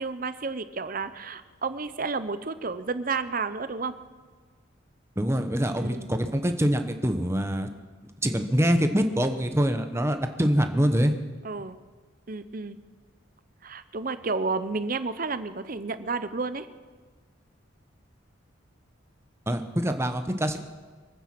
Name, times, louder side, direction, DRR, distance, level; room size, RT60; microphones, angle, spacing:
voice 1, 0.0-4.0 5.8-6.1 11.4-11.8 12.3-12.8 13.6-16.7, right 4 dB, 45° right, 12 dB, 0.7 m, -31 dB
voice 2, 5.2-7.7 8.2-11.1 19.5-20.6, equal, 15° right, 7 dB, 0.9 m, -24 dB
25.0 x 9.1 x 6.0 m, 1.4 s
head